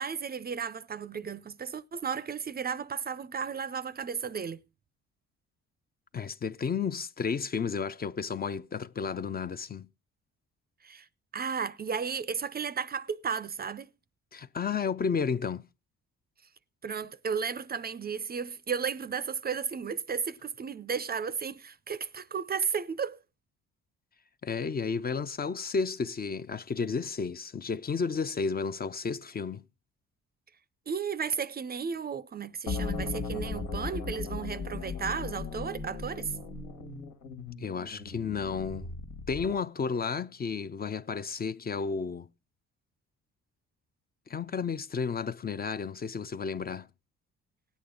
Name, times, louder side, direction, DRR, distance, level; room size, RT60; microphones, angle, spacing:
voice 1, 0.0-4.6 10.8-11.1 11.3-13.9 16.8-23.2 30.9-36.4, right 6 dB, 30° right, 0.5 m, -34 dB
voice 2, 6.1-9.9 14.3-15.6 24.4-29.6 37.6-38.9 39.3-42.3 44.3-46.9, left 5 dB, 30° left, 0.5 m, -32 dB
sound 1, 32.7-39.6, left 4 dB, 90° left, 2.4 m, -37 dB
17.5 x 8.5 x 3.8 m
cardioid pair, 90°, 30 cm